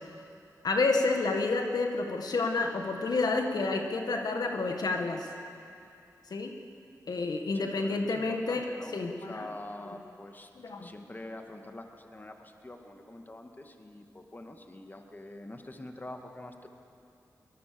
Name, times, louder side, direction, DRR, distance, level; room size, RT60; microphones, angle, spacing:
voice 1, 0.6-5.3 6.3-6.6 7.1-9.5 10.6-10.9, left 3 dB, 70° left, 3 dB, 1.8 m, -29 dB
voice 2, 7.5-8.9 9.3-10.5 10.8-16.7, left 1 dB, 25° left, 4 dB, 2.1 m, -45 dB
23.5 x 20.0 x 6.9 m, 2.6 s
cardioid pair, 50°, 7 cm